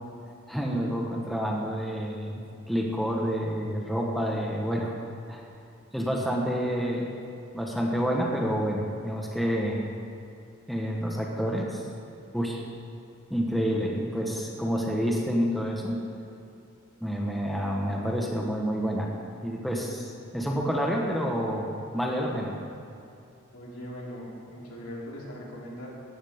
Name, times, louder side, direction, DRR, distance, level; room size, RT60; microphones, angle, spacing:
voice 1, 0.5-4.9 5.3-5.4 5.9-7.1 7.5-9.8 10.7-11.9 12.3-12.6 13.3-16.0 17.0-19.1 19.4-22.5, equal, ahead, -2 dB, 1.2 m, -28 dB
voice 2, 23.5-25.9, equal, 85° left, -5 dB, 3.4 m, -40 dB
17.0 x 12.5 x 3.7 m, 2.6 s
head